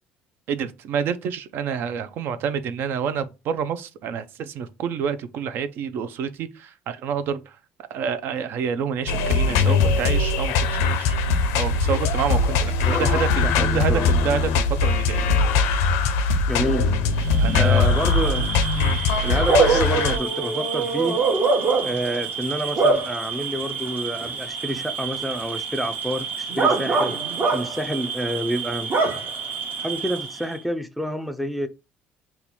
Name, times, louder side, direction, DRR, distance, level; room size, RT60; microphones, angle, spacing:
voice 1, 0.5-7.6 7.9-11.2 11.5-15.3 17.4-17.9 18.7-19.0, right 7 dB, 65° right, 0.4 m, -28 dB
sound 1, 9.1-20.2, left 4 dB, 90° left, 0.5 m, -21 dB
voice 2, 13.4-14.1 16.5-16.9 17.3-18.6 19.2-21.2 21.8-27.2 27.5-28.9 29.8-31.7, equal, ahead, 0.4 m, -28 dB
Bark / Cricket, 17.3-30.6, right 4 dB, 45° right, 0.9 m, -25 dB
2.8 x 2.3 x 4.1 m
cardioid pair, 100°, 4 cm